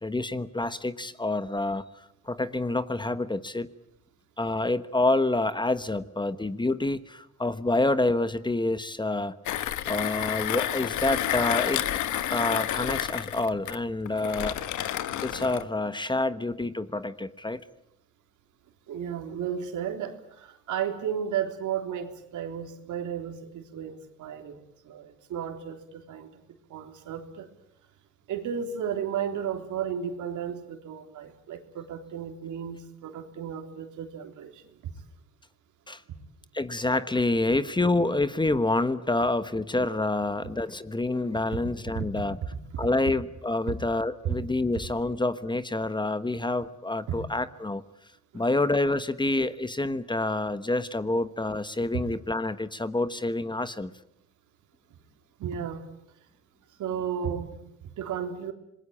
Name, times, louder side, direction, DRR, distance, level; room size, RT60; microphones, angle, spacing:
voice 1, 0.0-1.8 2.3-3.7 4.4-9.3 9.9-11.8 12.3-14.6 15.2-17.6 35.9-36.0 36.5-42.4 42.8-47.8 48.3-53.9, left 2 dB, 15° left, 13 dB, 1.2 m, -27 dB
Mechanisms, 9.5-15.7, left 11 dB, 75° left, 1.3 m, -30 dB
voice 2, 18.9-26.3 26.7-27.5 28.3-34.9 40.4-40.5 41.6-42.1 44.2-44.4 47.1-47.2 48.3-48.4 51.9-52.1 55.4-55.9 56.8-58.5, right 8 dB, 80° right, 6 dB, 3.5 m, -34 dB
27.0 x 21.0 x 8.8 m, 0.82 s
cardioid pair, 90°, 30 cm